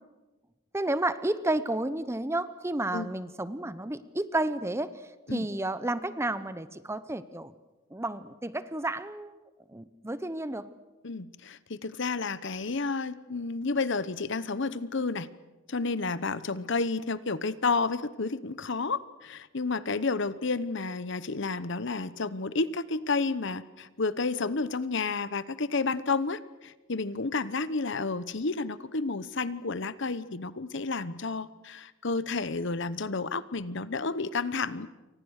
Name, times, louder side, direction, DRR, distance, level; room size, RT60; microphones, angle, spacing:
voice 1, 0.7-7.5 7.9-9.4 9.7-10.7, right 1 dB, 10° right, 14 dB, 0.8 m, -31 dB
voice 2, 11.0-15.3 15.7-34.9, left 4 dB, 60° left, 15 dB, 1.0 m, -31 dB
29.0 x 24.5 x 6.5 m, 1.2 s
head